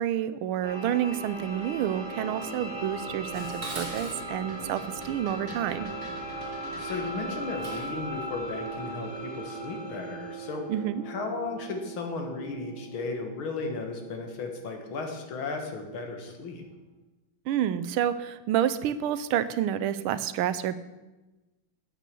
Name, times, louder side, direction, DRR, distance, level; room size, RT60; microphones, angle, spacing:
voice 1, 0.0-5.9 10.7-11.0 17.5-20.8, right 10 dB, 85° right, 14 dB, 1.5 m, -29 dB
sound 1, 0.6-16.2, right 2 dB, 20° left, 3.1 m, -39 dB
Dishes pots and pans, 3.3-8.0, right 2 dB, 45° right, 2.4 m, -43 dB
voice 2, 6.8-10.7 11.0-16.6, left 3 dB, 75° left, 4 dB, 2.3 m, -35 dB
9.1 x 8.3 x 6.8 m, 1.1 s
omnidirectional pair, 2.3 m